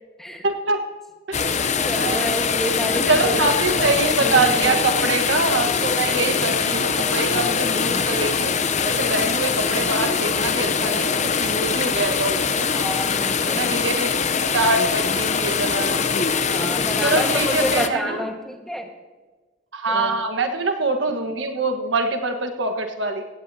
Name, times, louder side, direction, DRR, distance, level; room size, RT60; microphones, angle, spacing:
voice 1, 0.4-0.8 1.3-1.6 1.9-2.3 3.1-8.5 8.8-12.7 13.5-16.1 17.0-18.2 19.7-23.2, right 3 dB, 85° right, 6 dB, 1.4 m, -24 dB
sound 1, 1.3-17.9, left 5 dB, 40° left, 0.7 m, -22 dB
voice 2, 1.9-3.4 4.2-4.7 12.7-13.7 16.5-18.9 19.9-20.2, equal, ahead, 2 dB, 1.5 m, -29 dB
17.0 x 17.0 x 2.8 m, 1.3 s
head